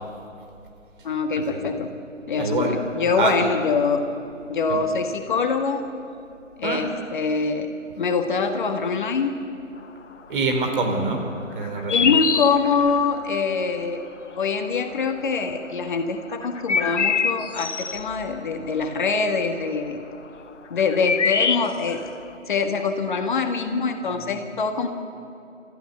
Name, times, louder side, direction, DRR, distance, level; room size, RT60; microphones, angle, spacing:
voice 1, 1.0-1.9 2.3-4.1 4.5-5.8 6.6-7.7 8.0-9.4 11.9-14.0 14.4-20.0 20.7-22.0 22.5-24.9, left 5 dB, 40° left, 6 dB, 1.5 m, -24 dB
voice 2, 2.4-2.7 3.2-3.3 4.7-4.8 6.6-6.8 10.3-11.3 11.5-12.1, right 3 dB, 40° right, 3 dB, 4.0 m, -25 dB
sound 1, 11.6-13.0 15.0-15.1 16.3-18.0 20.5-20.6 20.8-22.0, left 6 dB, 70° left, 1.0 m, -24 dB
28.5 x 14.5 x 7.0 m, 2.7 s
figure-of-eight pair, 140°, 38 cm